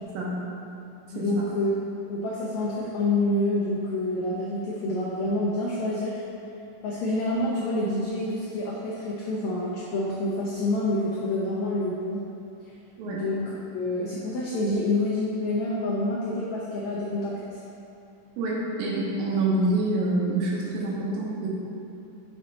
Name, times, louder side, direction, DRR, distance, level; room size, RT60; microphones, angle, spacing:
voice 1, 1.1-1.7 2.1-6.2 6.8-12.2 13.1-17.6, left 1 dB, 90° left, -6 dB, 1.5 m, -27 dB
voice 2, 18.4-21.5, right 2 dB, 80° right, -5 dB, 2.8 m, -26 dB
6.1 x 4.4 x 4.1 m, 2.7 s
omnidirectional pair, 4.1 m